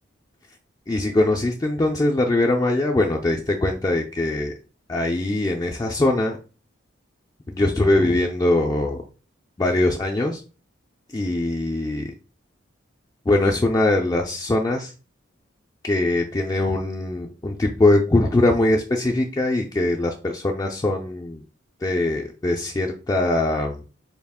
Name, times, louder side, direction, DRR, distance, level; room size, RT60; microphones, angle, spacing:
voice 1, 0.9-4.5 4.9-6.4 7.5-9.0 9.6-10.4 11.1-12.1 13.3-14.9 15.8-21.4 21.8-23.8, left 2 dB, 20° left, 1 dB, 0.3 m, -22 dB
4.1 x 2.3 x 3.5 m, 0.34 s
head